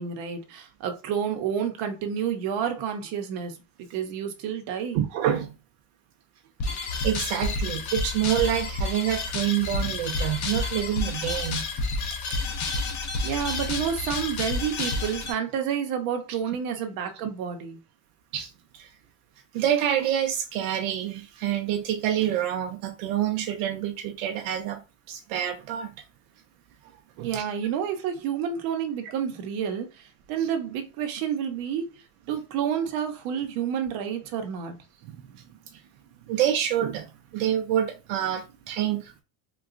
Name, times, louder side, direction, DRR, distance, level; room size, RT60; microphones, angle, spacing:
voice 1, 0.0-3.6 3.9-5.0 13.2-17.8 27.2-31.9 32.3-34.7, right 8 dB, 60° right, 0.8 m, -29 dB
voice 2, 4.9-5.5 6.7-6.8 7.0-11.6 12.3-12.4 18.3-18.9 19.5-24.8 25.1-25.9 27.2-27.4 35.1-35.4 36.3-37.1 37.3-39.2, right 11 dB, 85° right, 0.6 m, -27 dB
sound 1, 6.6-15.3, left 3 dB, 45° left, 0.8 m, -30 dB
3.9 x 2.3 x 2.4 m
cardioid pair, 155°, 41 cm